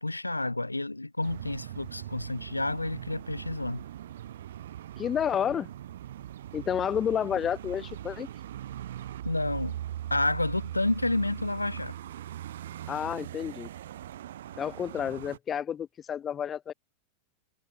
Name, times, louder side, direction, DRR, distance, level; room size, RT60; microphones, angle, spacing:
voice 1, 0.0-3.8 9.2-9.7 10.1-11.9, left 2 dB, 85° left, 0.6 m, -30 dB
sound 1, 1.2-15.4, right 12 dB, 60° right, 3.3 m, -40 dB
voice 2, 5.0-5.7 6.5-8.3 12.9-13.7 14.6-16.7, left 8 dB, 25° left, 0.7 m, -30 dB
figure-of-eight pair, 90°, 0 cm